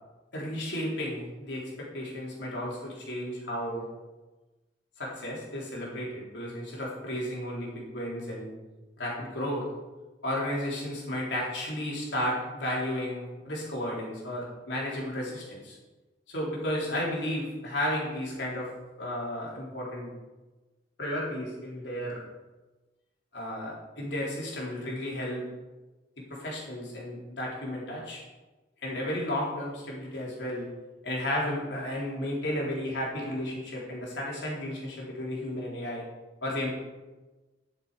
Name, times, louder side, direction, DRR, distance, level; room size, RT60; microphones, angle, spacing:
voice 1, 0.3-3.9 5.0-8.5 9.0-9.7 10.2-15.8 16.3-18.7 19.0-20.1 21.0-22.2 23.3-25.5 26.2-28.2 28.8-30.7 31.0-36.0 36.4-36.7, left 1 dB, 80° left, -4 dB, 3.6 m, -33 dB
11.5 x 6.8 x 5.1 m, 1.2 s
head